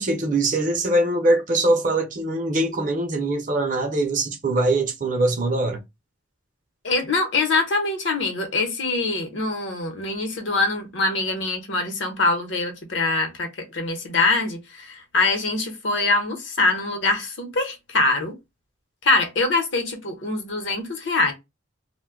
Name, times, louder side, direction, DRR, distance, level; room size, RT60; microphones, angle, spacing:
voice 1, 0.0-5.8, right 2 dB, 40° right, 0.6 m, -22 dB
voice 2, 6.8-18.3 19.0-21.3, left 3 dB, 65° left, 0.8 m, -24 dB
2.5 x 2.2 x 3.6 m
head